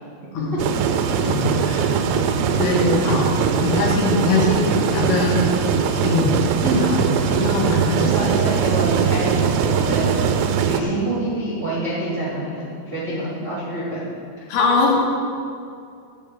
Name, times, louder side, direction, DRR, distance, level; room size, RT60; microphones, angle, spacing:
sound 1, 0.6-10.8, right 7 dB, 85° right, 3.3 m, -21 dB
voice 1, 1.3-1.9 2.6-3.3 3.6-5.4 6.0-6.3 6.7-7.0 7.4-8.1 14.5-15.0, left 3 dB, 75° left, -2 dB, 3.7 m, -21 dB
voice 2, 8.0-10.2 10.6-12.6 12.9-14.0, right 2 dB, 60° right, -8 dB, 1.1 m, -26 dB
11.5 x 5.5 x 8.4 m, 2.4 s
omnidirectional pair, 5.8 m